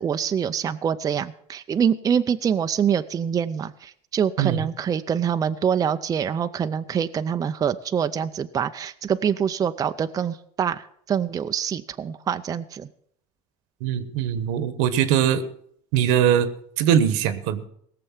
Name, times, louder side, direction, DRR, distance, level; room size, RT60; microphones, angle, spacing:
voice 1, 0.0-12.9, right 8 dB, 25° right, 9 dB, 0.5 m, -25 dB
voice 2, 13.8-15.4 15.9-16.5 16.8-17.6, right 9 dB, 85° right, 13 dB, 1.3 m, -21 dB
18.0 x 6.8 x 7.3 m, 0.66 s
cardioid pair, 130°, 14 cm